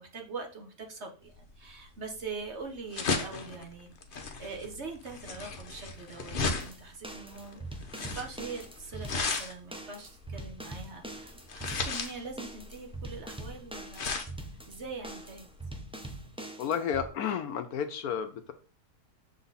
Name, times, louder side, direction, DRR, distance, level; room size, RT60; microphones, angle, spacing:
voice 1, 0.0-15.5, right 4 dB, 45° right, 3 dB, 1.3 m, -43 dB
sound 1, 1.4-16.2, left 4 dB, 40° left, 0.8 m, -36 dB
sound 2, 6.4-17.1, right 1 dB, 10° right, 0.4 m, -43 dB
voice 2, 16.6-18.5, left 8 dB, 70° left, 9 dB, 1.1 m, -32 dB
6.7 x 4.0 x 4.0 m, 0.37 s
omnidirectional pair, 1.7 m